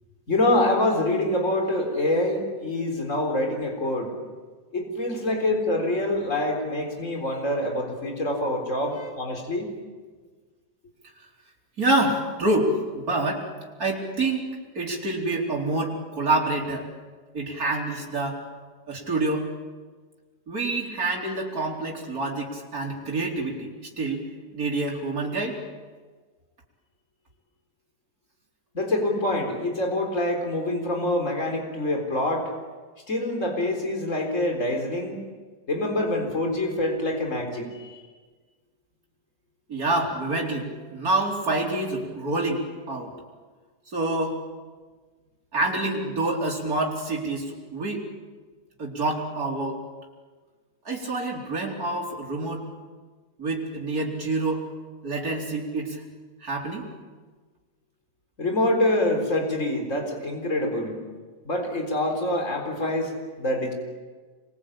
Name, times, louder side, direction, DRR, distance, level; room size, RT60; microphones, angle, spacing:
voice 1, 0.3-4.2 4.7-9.7 28.7-32.5 33.1-35.2 35.7-38.0 58.4-61.0 61.4-63.1 63.4-63.7, left 1 dB, 45° left, 2 dB, 4.4 m, -25 dB
voice 2, 11.8-13.5 13.8-16.9 17.3-18.4 18.9-19.5 20.5-24.3 24.5-25.6 39.7-43.1 43.9-44.4 45.5-48.0 48.8-49.8 50.8-52.6 53.4-54.6 55.0-56.0 56.4-56.8, right 2 dB, 60° right, -1 dB, 4.7 m, -27 dB
27.0 x 23.5 x 8.8 m, 1.4 s
omnidirectional pair, 1.8 m